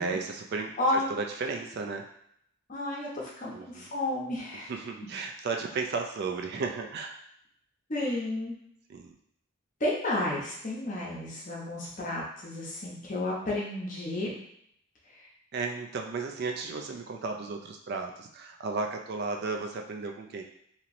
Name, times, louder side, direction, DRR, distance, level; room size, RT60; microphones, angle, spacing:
voice 1, 0.0-2.0 3.5-3.9 4.7-7.1 8.9-9.1 15.5-20.4, right 4 dB, 50° right, 2 dB, 0.3 m, -34 dB
voice 2, 0.8-1.1 2.7-4.7 7.9-8.6 9.8-14.3, left 1 dB, 40° left, -5 dB, 0.8 m, -32 dB
2.9 x 2.9 x 2.5 m, 0.72 s
head